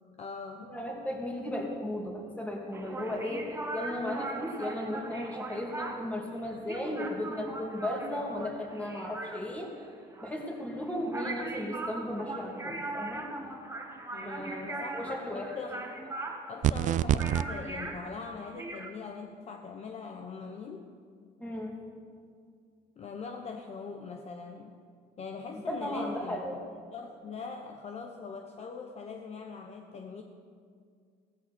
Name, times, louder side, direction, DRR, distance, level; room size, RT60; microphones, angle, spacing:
voice 1, 0.2-0.8 14.1-14.9 15.3-15.9 16.5-20.9 23.0-24.7 25.2-26.4 26.9-30.2, left 5 dB, 40° left, 4 dB, 1.0 m, -42 dB
voice 2, 0.7-9.7 10.2-13.3 14.2-15.5 21.4-21.8 25.5-26.6, left 1 dB, 10° left, -1 dB, 2.8 m, -35 dB
sound 1, 2.7-18.9, right 2 dB, 15° right, 1.5 m, -40 dB
sound 2, 16.6-17.4, right 10 dB, 45° right, 0.4 m, -25 dB
16.0 x 14.5 x 4.4 m, 2.1 s
cardioid pair, 110°, 17 cm